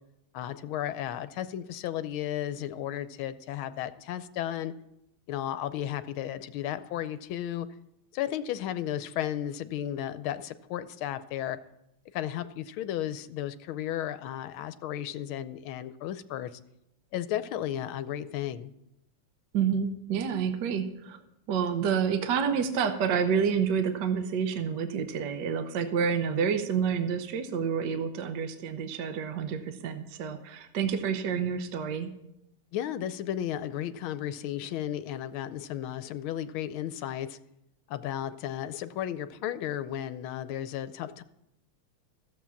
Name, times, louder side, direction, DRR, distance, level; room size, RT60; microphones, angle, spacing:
voice 1, 0.3-4.7 5.3-7.7 8.1-11.6 12.1-16.6 17.1-18.7 32.7-37.4 37.9-41.2, left 11 dB, 80° left, 13 dB, 1.4 m, -34 dB
voice 2, 19.5-21.2 21.5-32.1, right 7 dB, 60° right, 8 dB, 1.4 m, -29 dB
14.5 x 7.5 x 7.1 m, 0.85 s
omnidirectional pair, 2.3 m